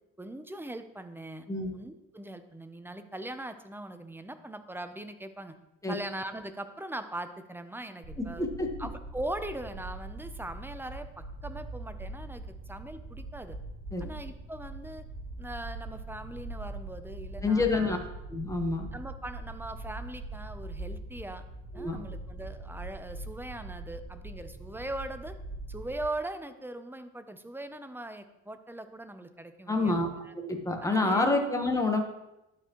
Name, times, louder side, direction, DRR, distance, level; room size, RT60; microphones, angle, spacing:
voice 1, 0.2-1.5 1.7-5.6 5.9-8.5 8.8-13.6 14.0-15.0 15.4-18.0 18.9-21.4 21.7-25.4 25.7-30.0 30.8-31.4, right 1 dB, 5° right, 9 dB, 0.5 m, -40 dB
sound 1, 8.0-26.0, right 2 dB, 55° right, 1.9 m, -42 dB
voice 2, 8.4-8.7 13.9-14.1 17.4-18.0 18.3-18.9 21.7-22.0 29.7-30.1 30.3-32.0, left 3 dB, 10° left, 3 dB, 1.1 m, -27 dB
11.5 x 4.4 x 3.0 m, 0.92 s
cardioid pair, 90°, 30 cm